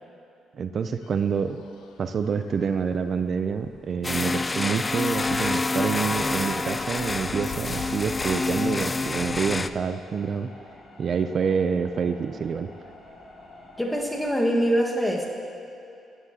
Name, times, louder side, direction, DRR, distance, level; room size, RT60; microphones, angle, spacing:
voice 1, 0.5-1.6 2.0-10.5 11.0-12.7, right 6 dB, 50° right, 10 dB, 0.4 m, -27 dB
sound 1, 1.0-9.9, left 6 dB, 90° left, 0.7 m, -46 dB
sound 2, 4.0-9.7, left 3 dB, 25° left, 0.3 m, -27 dB
sound 3, 5.9-14.3, left 2 dB, 50° left, 2.4 m, -48 dB
voice 2, 13.8-15.3, equal, 5° left, -1 dB, 1.5 m, -24 dB
15.0 x 9.5 x 2.8 m, 2.7 s
cardioid pair, 90°, 0 cm